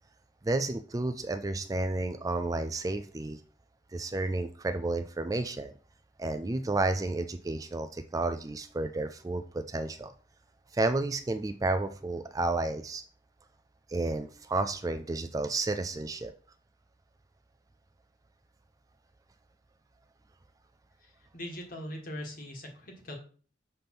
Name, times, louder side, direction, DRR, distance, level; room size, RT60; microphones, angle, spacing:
voice 1, 0.4-3.4 3.9-5.7 6.2-10.1 10.7-13.0 13.9-16.3, right 2 dB, 20° right, 8 dB, 0.3 m, -31 dB
voice 2, 21.0-23.2, equal, 45° left, 2 dB, 1.7 m, -41 dB
6.8 x 3.5 x 5.9 m, 0.42 s
head